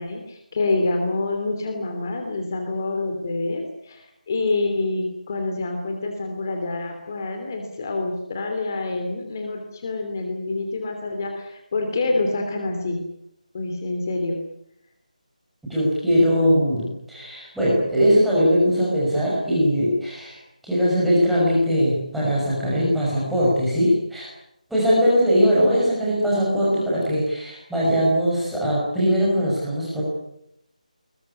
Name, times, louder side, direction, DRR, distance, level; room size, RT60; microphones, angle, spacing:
voice 1, 0.0-13.0 13.5-14.4, left 2 dB, 25° left, 3 dB, 3.0 m, -27 dB
voice 2, 15.7-20.4 20.6-24.3 24.7-30.0, equal, ahead, -8 dB, 5.5 m, -20 dB
22.0 x 20.5 x 9.9 m, 0.79 s
figure-of-eight pair, 175°, 4 cm